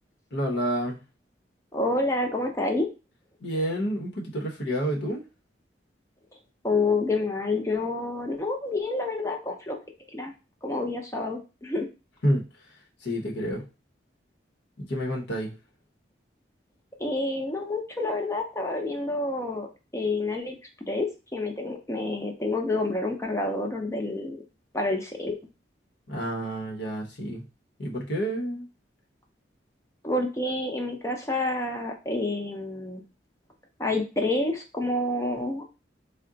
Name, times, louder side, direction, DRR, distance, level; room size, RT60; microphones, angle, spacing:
voice 1, 0.3-1.0 3.4-5.2 12.2-12.4 13.0-13.6 14.8-15.5 26.1-27.4 27.8-28.7, equal, 75° left, -1 dB, 0.9 m, -29 dB
voice 2, 1.7-2.9 6.6-9.8 10.1-10.3 10.6-11.9 17.0-19.7 19.9-20.6 20.8-24.4 24.7-25.4 30.0-33.0 33.8-35.6, left 2 dB, 15° left, 2 dB, 0.6 m, -28 dB
3.6 x 2.2 x 3.8 m, 0.30 s
head